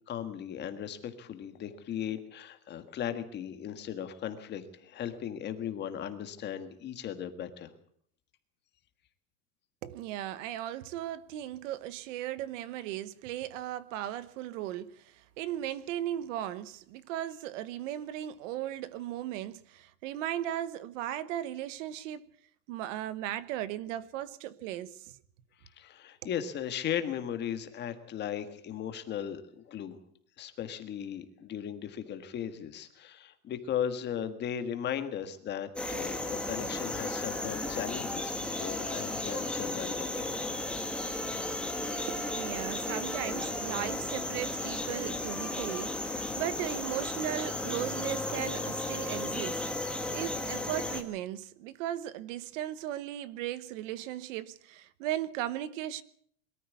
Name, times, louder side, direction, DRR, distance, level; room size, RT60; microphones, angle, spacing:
voice 1, 0.1-7.7 25.8-30.0 30.4-40.4, left 9 dB, 25° left, 1.6 m, -37 dB
voice 2, 9.8-22.2 22.7-25.1 42.1-56.0, right 12 dB, 55° right, 1.1 m, -37 dB
sound 1, 35.8-51.0, left 2 dB, ahead, 1.4 m, -34 dB
22.5 x 13.5 x 8.4 m
supercardioid pair, 175°, 45 cm